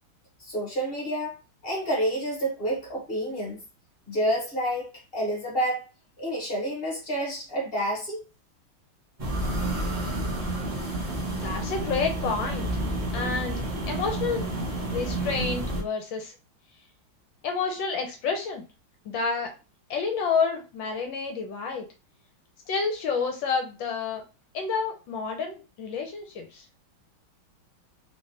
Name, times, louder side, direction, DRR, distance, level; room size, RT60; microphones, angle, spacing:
voice 1, 0.4-1.4 1.6-3.6 4.1-5.9 6.2-8.2, equal, 35° left, 1.1 m, -29 dB
sound 1, 9.2-15.8, right 1 dB, 25° right, 0.8 m, -30 dB
voice 2, 11.3-12.7 13.1-14.5 14.9-16.3 17.4-18.6 19.0-19.5 19.9-21.9 22.7-24.2 24.5-26.7, left 5 dB, 75° left, 1.3 m, -29 dB
3.6 x 3.3 x 2.7 m
omnidirectional pair, 2.2 m